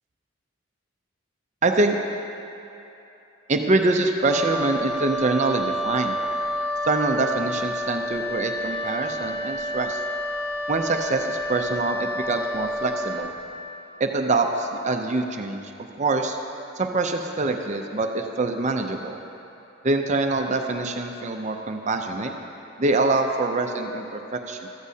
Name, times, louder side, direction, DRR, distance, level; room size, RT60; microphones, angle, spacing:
voice 1, 1.6-2.0 3.5-6.2 6.8-10.0 10.7-13.3 14.0-16.4 16.8-19.2 19.8-22.3 22.8-24.7, right 2 dB, 40° right, 4 dB, 0.6 m, -25 dB
Wind instrument woodwind instrument, 4.2-13.3, equal, 25° left, 1.8 m, -29 dB
14.5 x 13.5 x 2.8 m, 2.9 s
head